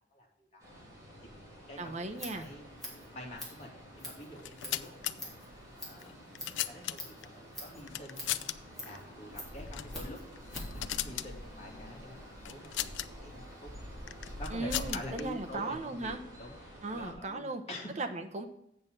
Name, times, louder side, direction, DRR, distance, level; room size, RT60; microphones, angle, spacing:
voice 1, 0.1-0.6 1.0-2.6 3.1-5.4 5.7-6.2 6.5-10.2 10.7-13.7 14.4-17.9, left 1 dB, 35° left, -1 dB, 2.7 m, -47 dB
sound 1, 0.6-17.1, equal, 20° right, 3.6 m, -48 dB
voice 2, 1.8-2.5 14.5-16.2 16.8-17.6 18.0-18.5, right 2 dB, 40° right, 6 dB, 1.0 m, -37 dB
Scissors, 1.9-10.8, left 1 dB, ahead, 3.6 m, -47 dB
sound 2, 4.3-5.1 6.0-7.3 7.9-8.6 8.8-9.0 9.7-10.0 10.3-11.3 12.5-13.1 14.1-15.2, left 12 dB, 85° left, 0.5 m, -37 dB
8.1 x 6.8 x 5.5 m, 0.76 s
head